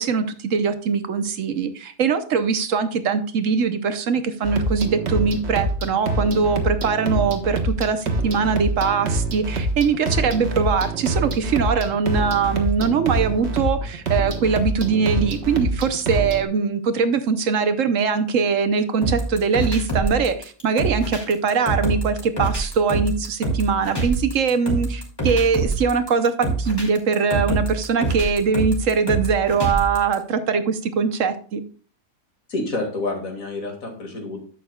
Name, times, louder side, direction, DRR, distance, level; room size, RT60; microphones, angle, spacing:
voice 1, 0.0-31.6, right 5 dB, 65° right, 10 dB, 1.1 m, -22 dB
sound 1, 4.4-16.4, right 2 dB, 50° right, 1.4 m, -25 dB
sound 2, 19.0-30.1, right 2 dB, 15° left, 2.6 m, -25 dB
voice 2, 32.5-34.4, left 2 dB, 70° left, 2 dB, 2.5 m, -28 dB
11.0 x 7.7 x 2.3 m, 0.41 s
omnidirectional pair, 1.5 m